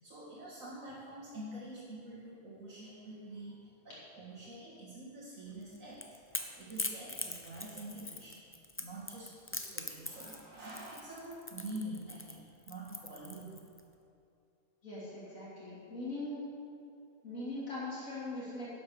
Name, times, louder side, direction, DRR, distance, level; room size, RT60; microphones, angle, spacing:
voice 1, 0.0-6.0 6.6-8.4 8.8-13.6, right 1 dB, 80° right, -8 dB, 2.4 m, -46 dB
Crackle / Crack, 5.6-13.8, left 2 dB, 15° left, 0.6 m, -42 dB
voice 2, 14.8-16.4 17.2-18.7, left 2 dB, 80° left, -9 dB, 3.5 m, -41 dB
11.0 x 8.0 x 6.9 m, 2.6 s
omnidirectional pair, 1.4 m